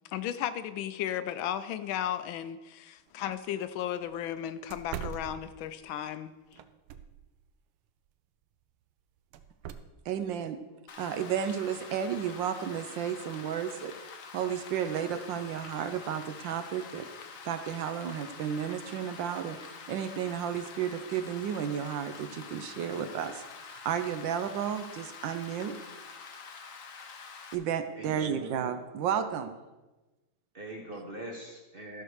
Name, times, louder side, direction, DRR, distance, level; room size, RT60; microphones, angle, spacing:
voice 1, 0.1-6.3, left 10 dB, 75° left, 12 dB, 1.3 m, -35 dB
sound 1, 3.1-3.2 3.6-3.7 4.1-4.2 4.7-5.9 6.5-7.3 9.3-9.7, right 9 dB, 90° right, 1.5 m, -41 dB
voice 2, 10.1-10.6 11.0-13.9 14.3-17.1 17.4-19.6 19.9-25.7 27.5-29.5, right 8 dB, 70° right, 9 dB, 1.3 m, -32 dB
Rain, 10.9-27.5, left 5 dB, 55° left, 0.9 m, -46 dB
voice 3, 27.9-28.6 30.5-32.0, right 1 dB, 40° right, 1 dB, 0.8 m, -42 dB
13.0 x 4.6 x 6.4 m, 1.1 s
omnidirectional pair, 2.3 m